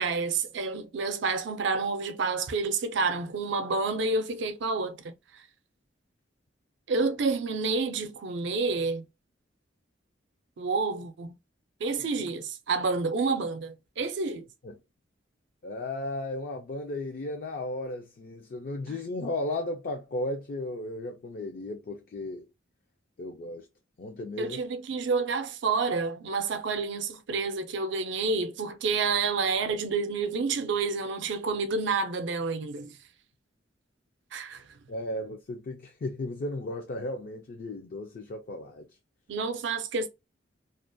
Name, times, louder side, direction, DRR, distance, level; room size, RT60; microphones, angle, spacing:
voice 1, 0.0-5.1 6.9-9.0 10.6-11.4 11.8-14.5 18.9-19.0 24.4-33.0 34.3-34.6 39.3-40.1, right 4 dB, 70° right, 0.4 m, -29 dB
voice 2, 15.6-22.4 23.2-23.7 24.0-24.6 34.9-38.9, left 2 dB, 50° left, 0.4 m, -35 dB
2.4 x 2.1 x 2.5 m
head